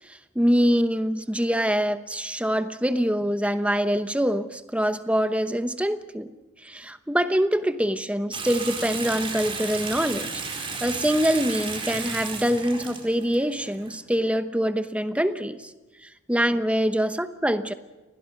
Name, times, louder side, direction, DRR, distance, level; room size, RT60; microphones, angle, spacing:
voice 1, 0.3-6.3 6.6-15.6 16.3-17.7, equal, 5° right, 10 dB, 0.9 m, -24 dB
Water tap faucet / Sink (filling or washing) / Bathtub (filling or washing), 8.3-14.0, right 4 dB, 25° right, 4.3 m, -33 dB
29.0 x 21.0 x 6.1 m, 1.2 s
head